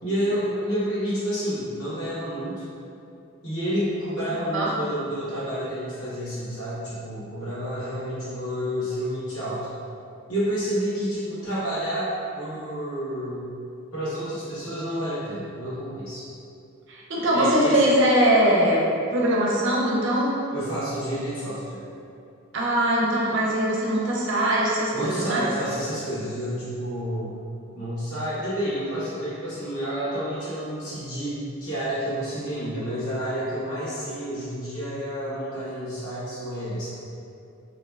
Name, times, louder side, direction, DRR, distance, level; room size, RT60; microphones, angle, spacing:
voice 1, 0.0-2.6 3.4-9.6 10.3-13.5 13.9-16.2 17.3-17.8 20.5-21.8 24.9-27.3 27.7-36.9, equal, 80° left, -12 dB, 1.3 m, -29 dB
voice 2, 16.9-18.9 19.1-20.3 22.5-25.4, right 1 dB, 55° right, -4 dB, 0.5 m, -21 dB
2.6 x 2.1 x 3.3 m, 2.6 s
head